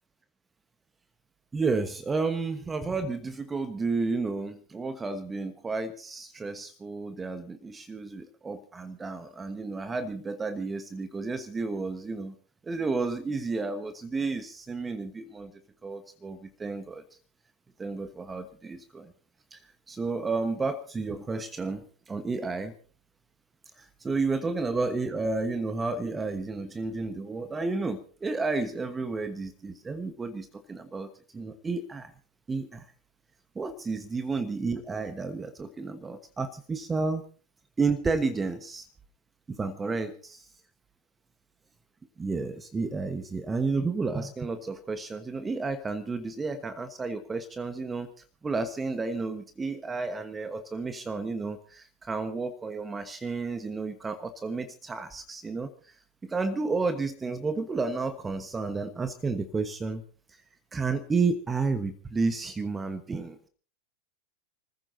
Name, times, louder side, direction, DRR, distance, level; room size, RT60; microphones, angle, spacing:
voice 1, 1.5-12.3 12.6-15.5 15.8-17.0 17.8-19.1 19.5-19.6 19.9-22.7 23.8-32.1 32.5-32.9 33.5-37.2 37.8-38.9 39.5-40.5 42.2-48.1 48.4-55.7 56.2-60.0 60.7-63.5, right 4 dB, 15° right, 10 dB, 1.3 m, -31 dB
29.0 x 15.0 x 2.8 m, 0.40 s
figure-of-eight pair, 90°, 0 cm